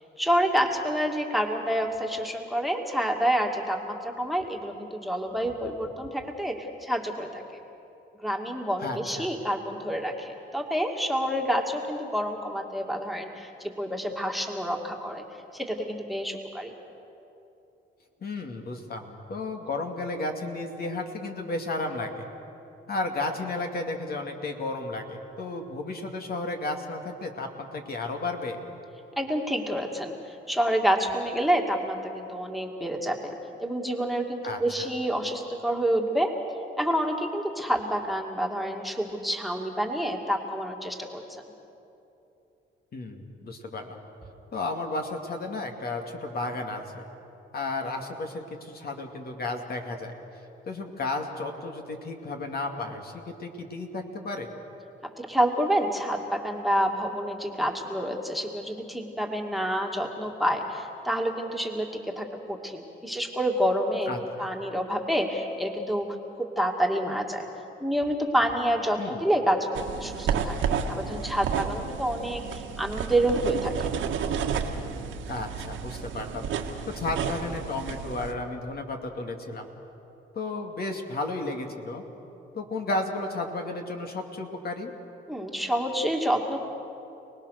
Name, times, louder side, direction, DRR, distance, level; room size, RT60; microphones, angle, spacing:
voice 1, 0.2-7.4 8.2-13.5 13.8-15.2 15.5-16.7 29.2-33.3 33.6-36.3 36.8-41.4 55.2-64.1 64.4-66.1 66.4-67.5 67.8-73.7 85.3-86.6, equal, ahead, 2 dB, 2.4 m, -28 dB
voice 2, 8.8-9.3 18.2-22.3 22.9-28.6 34.4-34.9 42.9-44.0 44.5-47.0 47.5-50.1 50.7-54.5 64.1-64.5 69.0-69.2 75.3-76.4 76.9-79.7 80.3-82.0 82.5-84.9, left 2 dB, 50° left, 3 dB, 2.5 m, -33 dB
sound 1, 69.7-78.3, right 7 dB, 80° right, 1.9 m, -31 dB
29.5 x 19.5 x 6.6 m, 2.8 s
cardioid pair, 90°, 20 cm